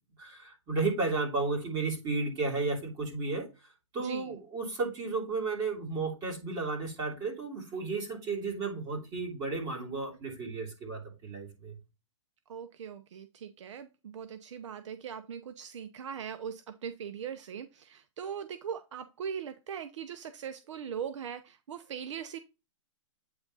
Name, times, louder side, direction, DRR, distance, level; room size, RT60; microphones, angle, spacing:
voice 1, 0.2-3.5 3.9-11.8, right 3 dB, 25° right, 3.0 m, -33 dB
voice 2, 4.0-4.3 12.5-22.4, right 7 dB, 65° right, 0.7 m, -40 dB
8.7 x 3.5 x 4.0 m
hypercardioid pair, 145°, 17 cm